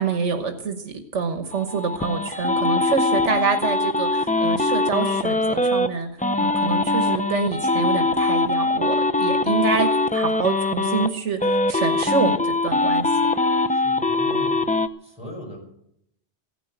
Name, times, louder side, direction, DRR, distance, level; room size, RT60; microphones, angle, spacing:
voice 1, 0.0-6.1 6.4-13.1, right 5 dB, 80° right, 7 dB, 1.5 m, -26 dB
sound 1, 1.5-5.9 6.2-11.1 11.4-14.9, left 2 dB, 10° left, 0.3 m, -22 dB
voice 2, 13.7-14.7 15.0-15.6, left 1 dB, 5° right, -1 dB, 6.8 m, -39 dB
15.5 x 10.0 x 7.9 m, 0.75 s
omnidirectional pair, 1.2 m